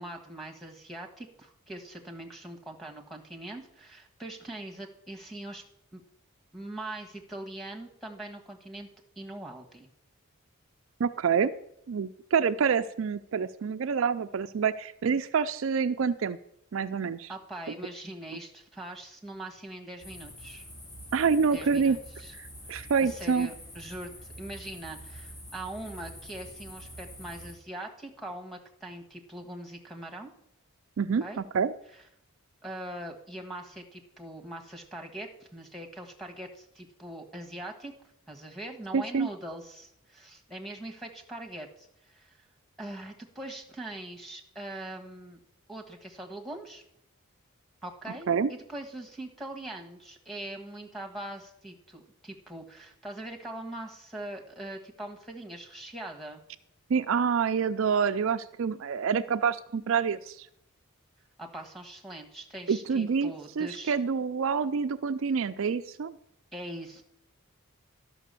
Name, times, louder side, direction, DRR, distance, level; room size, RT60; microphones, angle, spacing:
voice 1, 0.0-5.6 5.9-6.0 6.5-8.9 9.2-9.9 17.3-20.7 21.5-22.3 22.7-24.1 24.4-30.3 31.2-31.4 31.9-32.0 32.6-37.9 38.3-42.4 42.8-45.4 45.7-46.8 47.8-56.4 61.4-64.0 66.5-67.0, right 1 dB, ahead, 1 dB, 1.4 m, -42 dB
voice 2, 11.0-11.5 11.9-16.4 16.7-17.3 21.1-22.0 22.4-23.5 31.0-31.7 38.9-39.3 48.3-48.5 56.9-60.5 62.7-66.1, right 6 dB, 65° right, 10 dB, 0.4 m, -27 dB
sound 1, 20.0-27.5, equal, 60° left, 3.6 m, -46 dB
12.0 x 5.8 x 6.8 m, 0.76 s
head